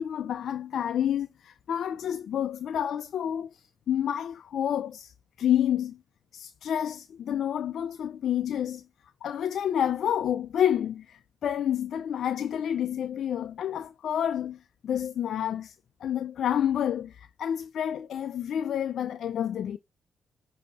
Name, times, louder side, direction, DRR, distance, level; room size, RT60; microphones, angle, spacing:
voice 1, 0.0-6.0 6.3-8.8 9.2-15.8 16.0-19.8, left 9 dB, 70° left, 0.4 m, -29 dB
8.2 x 2.8 x 4.3 m
supercardioid pair, 50°, 0 cm